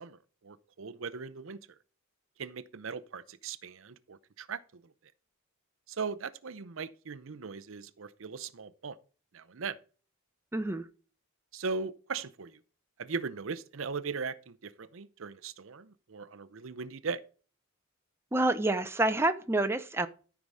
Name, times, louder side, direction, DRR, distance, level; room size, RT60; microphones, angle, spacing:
voice 1, 0.0-1.6 2.4-4.8 5.9-9.0 9.3-9.8 11.5-12.6 13.0-17.2, right 5 dB, 65° right, 0.6 m, -39 dB
voice 2, 10.5-10.8 18.3-20.1, right 2 dB, 10° right, 0.6 m, -28 dB
13.5 x 4.7 x 5.4 m
head